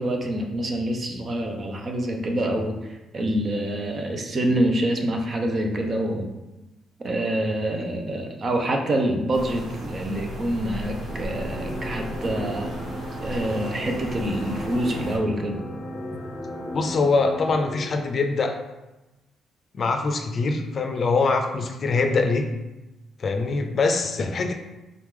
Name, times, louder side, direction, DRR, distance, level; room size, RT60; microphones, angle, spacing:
voice 1, 0.0-6.3 7.0-12.7 13.2-15.6, right 1 dB, 40° right, 3 dB, 0.7 m, -26 dB
sound 1, 9.3-15.2, right 1 dB, 65° right, 0.9 m, -35 dB
sound 2, 11.1-18.0, left 1 dB, 15° left, 0.7 m, -35 dB
voice 2, 16.7-18.6 19.7-22.5 23.2-24.5, left 3 dB, 50° left, 5 dB, 0.5 m, -23 dB
3.8 x 3.0 x 3.7 m, 1.0 s
cardioid pair, 90°, 0 cm